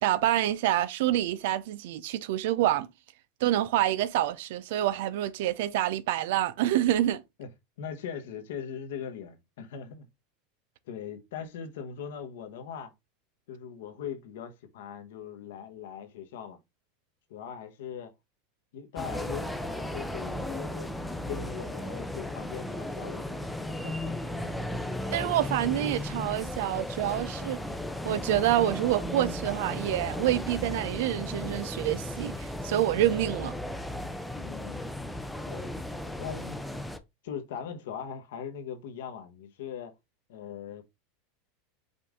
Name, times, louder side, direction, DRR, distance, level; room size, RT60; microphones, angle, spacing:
voice 1, 0.0-2.9 3.4-7.2 25.1-27.6 28.0-33.5, right 13 dB, 70° right, 0.4 m, -27 dB
voice 2, 7.8-10.1 10.9-12.9 13.5-16.6 17.3-18.1 18.7-20.9 21.3-23.5 23.8-24.1 34.4-34.8 35.5-35.7 36.2-36.6 37.2-39.9 40.3-40.8, left 8 dB, 80° left, 1.0 m, -40 dB
sound 1, 19.0-37.0, left 1 dB, ahead, 0.5 m, -35 dB
5.2 x 2.6 x 3.6 m
supercardioid pair, 135°, 0 cm